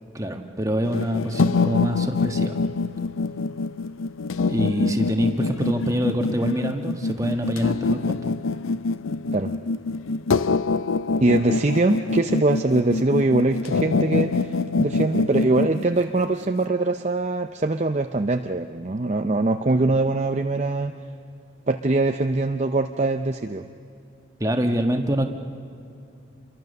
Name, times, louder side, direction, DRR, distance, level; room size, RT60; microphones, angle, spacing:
voice 1, 0.1-2.6 4.5-8.3 24.4-25.2, equal, 15° right, 4 dB, 1.4 m, -25 dB
sound 1, 0.8-16.6, left 3 dB, 85° left, 0.6 m, -25 dB
voice 2, 11.2-20.9 21.7-23.6, right 2 dB, 35° right, 6 dB, 0.6 m, -22 dB
27.5 x 22.5 x 6.7 m, 2.7 s
head